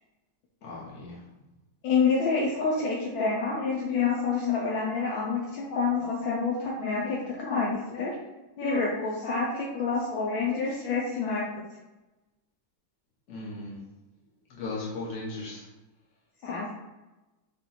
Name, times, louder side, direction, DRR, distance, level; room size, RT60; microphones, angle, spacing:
voice 1, 0.6-1.2 13.3-13.8 14.5-15.7, left 2 dB, 40° left, -5 dB, 1.2 m, -37 dB
voice 2, 1.8-8.2 8.6-11.5 16.4-16.7, left 4 dB, 75° left, -2 dB, 1.3 m, -28 dB
4.3 x 2.5 x 4.0 m, 1.1 s
omnidirectional pair, 2.3 m